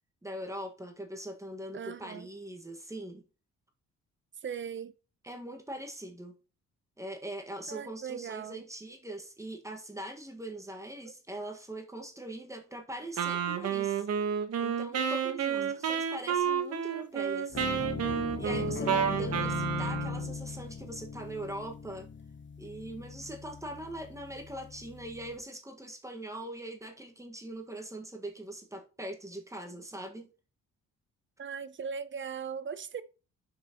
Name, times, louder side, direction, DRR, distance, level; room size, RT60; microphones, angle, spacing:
voice 1, 0.2-3.2 5.2-6.3 7.0-14.0 14.6-17.6 18.4-22.1 22.6-30.3, right 1 dB, 10° right, 1.6 m, -42 dB
voice 2, 1.7-2.3 4.4-4.9 7.7-8.6 14.9-15.7 19.3-19.4 31.4-33.0, right 7 dB, 40° right, 0.8 m, -39 dB
Wind instrument woodwind instrument, 13.2-20.3, right 8 dB, 55° right, 1.2 m, -30 dB
sound 1, 17.5-25.4, left 5 dB, 40° left, 1.0 m, -39 dB
10.0 x 6.0 x 3.0 m
cardioid pair, 90°, 30 cm